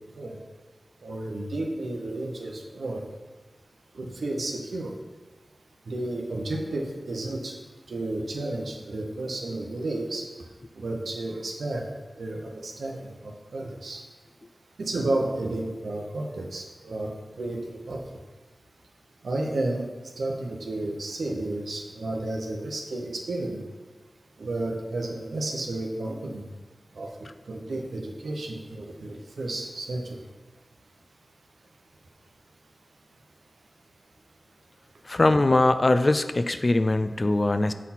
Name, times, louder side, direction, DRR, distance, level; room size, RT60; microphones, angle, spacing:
voice 1, 1.0-3.0 3.9-5.0 5.9-7.6 7.9-10.3 10.7-14.0 14.8-17.1 17.4-18.2 19.2-19.9 20.2-23.6 24.4-26.5 26.9-27.1 27.5-30.2, right 2 dB, 90° right, 1 dB, 0.8 m, -32 dB
voice 2, 35.1-37.7, left 2 dB, 45° left, 11 dB, 0.3 m, -21 dB
7.2 x 4.1 x 4.2 m, 1.3 s
cardioid pair, 45°, 0 cm